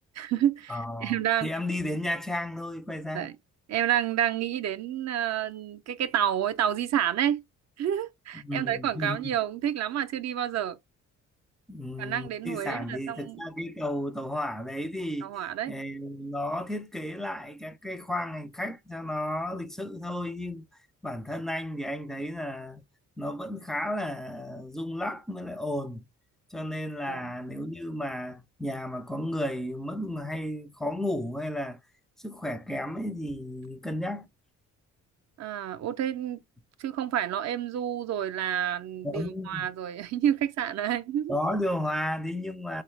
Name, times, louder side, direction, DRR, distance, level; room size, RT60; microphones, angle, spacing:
voice 1, 0.2-1.5 3.1-3.3 3.7-7.4 7.8-10.8 12.0-13.4 15.2-15.7 27.1-27.3 35.4-36.4 36.8-41.3, right 10 dB, 60° right, 0.6 m, -29 dB
voice 2, 0.7-1.2 1.4-3.3 8.3-9.2 11.7-15.3 15.7-20.7 21.0-22.8 23.2-26.0 26.5-31.8 32.2-34.3 39.0-39.7 41.3-42.8, left 1 dB, ahead, 0.4 m, -33 dB
3.8 x 2.4 x 3.1 m
cardioid pair, 90°, 30 cm